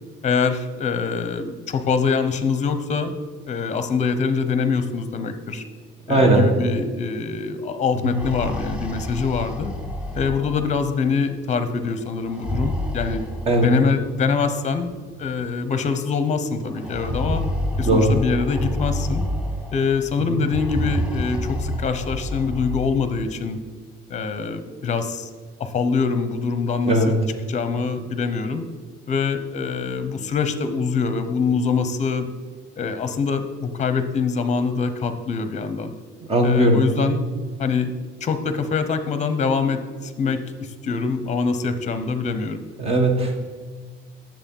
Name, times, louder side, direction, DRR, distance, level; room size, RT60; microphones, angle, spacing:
voice 1, 0.2-3.1 3.5-5.6 6.1-9.7 10.1-13.2 13.6-14.9 15.2-17.4 17.8-19.2 19.7-23.6 24.1-25.3 25.6-27.2 27.5-28.6 29.1-32.3 32.8-35.9 36.4-37.2 37.6-37.9 38.2-42.6, left 5 dB, 35° left, 10 dB, 0.9 m, -24 dB
voice 2, 6.1-6.4 8.0-8.2 13.5-13.7 17.9-18.2 26.9-27.2 36.3-36.8 42.8-43.4, right 1 dB, 30° right, 3 dB, 1.4 m, -18 dB
sound 1, 8.1-10.9 12.2-13.9 14.9-15.0 15.4-15.5 16.8-19.9 20.4-23.0, left 1 dB, 5° right, 0.9 m, -28 dB
9.7 x 7.5 x 5.5 m, 1.5 s
cardioid pair, 150°, 20 cm